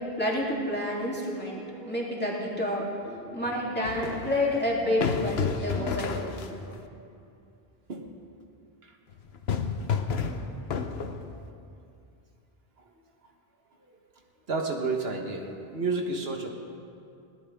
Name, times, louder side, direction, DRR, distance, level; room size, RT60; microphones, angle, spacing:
voice 1, 0.2-6.9, left 1 dB, 10° left, -5 dB, 2.9 m, -29 dB
sound 1, 3.8-6.8 9.1-11.5, left 6 dB, 75° left, 1.1 m, -31 dB
voice 2, 14.5-16.5, right 3 dB, 75° right, 2 dB, 1.5 m, -31 dB
20.0 x 18.0 x 3.5 m, 2.5 s
omnidirectional pair, 1.1 m